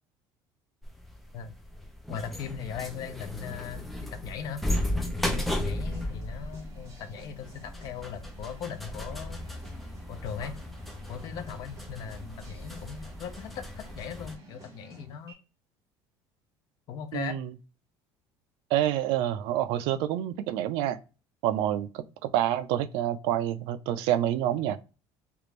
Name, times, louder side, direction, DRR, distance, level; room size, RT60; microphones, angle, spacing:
sound 1, 0.8-14.3, left 1 dB, ahead, 0.5 m, -35 dB
voice 1, 2.1-4.6 5.3-9.4 10.1-10.6 11.1-15.4 16.9-17.3, left 7 dB, 45° left, 0.6 m, -39 dB
sound 2, 5.6-15.3, right 1 dB, 35° right, 1.2 m, -51 dB
voice 2, 17.1-17.5 18.7-21.0 21.4-24.8, right 12 dB, 70° right, 0.4 m, -28 dB
3.4 x 2.5 x 3.1 m
cardioid pair, 170°, 9 cm